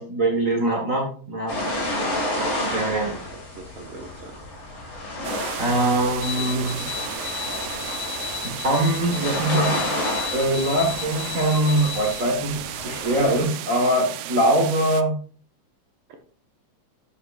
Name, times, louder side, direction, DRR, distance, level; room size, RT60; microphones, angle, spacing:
voice 1, 0.0-1.6 2.4-3.1 5.6-6.8 8.4-9.9 10.3-15.1, right 1 dB, 35° right, -1 dB, 1.4 m, -23 dB
sound 1, 1.5-13.4, left 1 dB, 40° left, 3.2 m, -31 dB
voice 2, 3.1-4.4 6.3-6.7 16.1-16.2, right 3 dB, 60° right, 4 dB, 1.5 m, -39 dB
sound 2, 5.2-15.0, right 13 dB, 90° right, 1.4 m, -35 dB
sound 3, 6.2-12.2, left 13 dB, 80° left, 1.7 m, -35 dB
10.0 x 8.3 x 2.5 m, 0.44 s
omnidirectional pair, 3.3 m